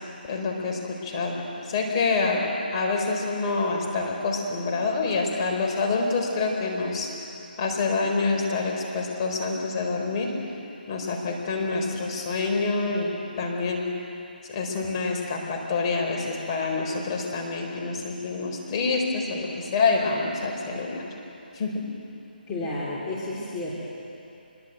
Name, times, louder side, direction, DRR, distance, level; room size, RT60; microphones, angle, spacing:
voice 1, 0.3-1.4 1.7-2.4 2.7-7.1 7.6-10.3 10.9-13.9 14.5-21.0 21.5-21.8, left 3 dB, 30° left, 0 dB, 4.5 m, -27 dB
voice 2, 22.5-23.8, left 2 dB, 15° left, -7 dB, 3.4 m, -31 dB
25.5 x 23.0 x 8.0 m, 2.8 s
figure-of-eight pair, 155°, 5 cm